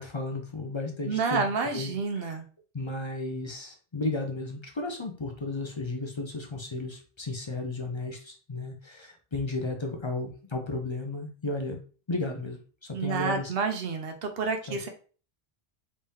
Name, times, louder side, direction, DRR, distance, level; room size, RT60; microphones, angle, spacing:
voice 1, 0.0-1.5 1.7-2.4 2.7-11.8 12.1-13.5 14.7-14.9, left 2 dB, 35° left, 3 dB, 0.5 m, -34 dB
voice 2, 1.0-2.4 12.9-14.9, right 4 dB, 70° right, 6 dB, 0.9 m, -29 dB
3.6 x 3.3 x 2.7 m, 0.38 s
omnidirectional pair, 1.0 m